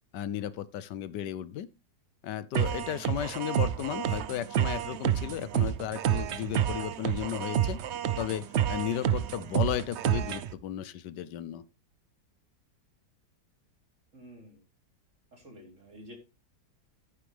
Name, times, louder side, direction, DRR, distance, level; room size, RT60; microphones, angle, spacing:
voice 1, 0.1-1.7 2.2-7.8 8.2-11.6, left 11 dB, 80° left, 1.3 m, -34 dB
sound 1, 2.5-10.5, right 10 dB, 65° right, 0.7 m, -29 dB
voice 2, 14.1-14.6 15.3-16.1, equal, 45° right, 4.0 m, -50 dB
11.5 x 9.5 x 3.3 m
omnidirectional pair, 1.8 m